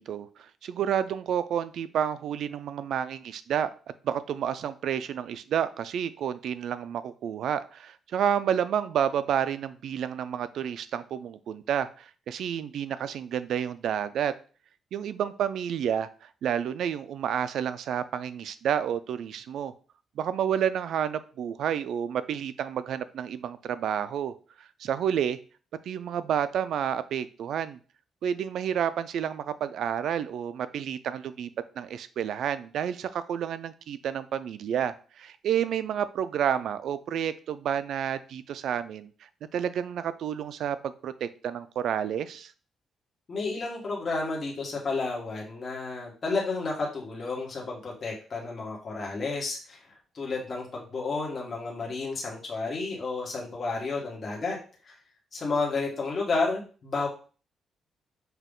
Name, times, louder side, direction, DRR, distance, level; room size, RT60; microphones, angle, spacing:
voice 1, 0.0-3.7 4.0-14.3 14.9-19.7 20.2-25.4 25.9-27.8 28.2-31.5 31.8-39.1 39.5-42.5, right 9 dB, 75° right, 0.4 m, -30 dB
voice 2, 43.3-54.6 54.8-54.9 55.3-57.1, left 3 dB, 40° left, 1.4 m, -31 dB
5.6 x 2.4 x 3.7 m
cardioid pair, 115°, 0 cm